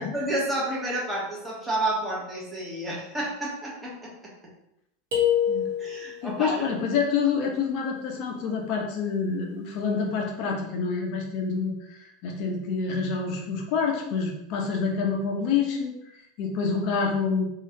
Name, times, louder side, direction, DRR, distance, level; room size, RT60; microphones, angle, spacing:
voice 1, 0.0-4.1 5.8-6.6, right 1 dB, 10° right, -5 dB, 1.1 m, -30 dB
sound 1, 5.1-6.2, left 9 dB, 55° right, 1.0 m, -25 dB
voice 2, 6.2-17.5, left 5 dB, 45° left, 0 dB, 0.5 m, -27 dB
3.0 x 2.4 x 2.9 m, 0.81 s
figure-of-eight pair, 85°, 0 cm